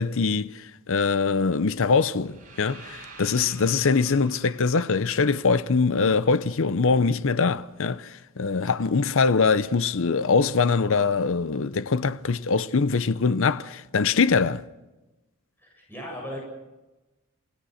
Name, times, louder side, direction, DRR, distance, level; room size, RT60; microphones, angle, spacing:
voice 1, 0.0-14.6, left 4 dB, 60° left, 0.6 m, -23 dB
sound 1, 2.2-6.3, right 3 dB, 35° right, 7.5 m, -48 dB
voice 2, 15.6-16.4, equal, 10° left, 7.5 m, -37 dB
28.5 x 17.5 x 6.5 m
head